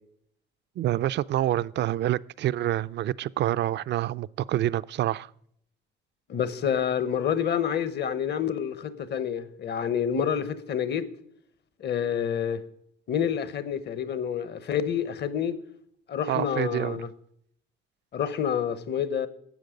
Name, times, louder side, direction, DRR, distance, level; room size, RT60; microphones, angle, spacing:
voice 1, 0.8-5.3 16.3-17.1, right 13 dB, 60° right, 0.4 m, -27 dB
voice 2, 6.3-11.1 11.8-12.6 13.1-15.6 16.1-17.1 18.1-19.3, left 8 dB, 60° left, 1.0 m, -28 dB
12.0 x 7.7 x 5.1 m
cardioid pair, 90°, 20 cm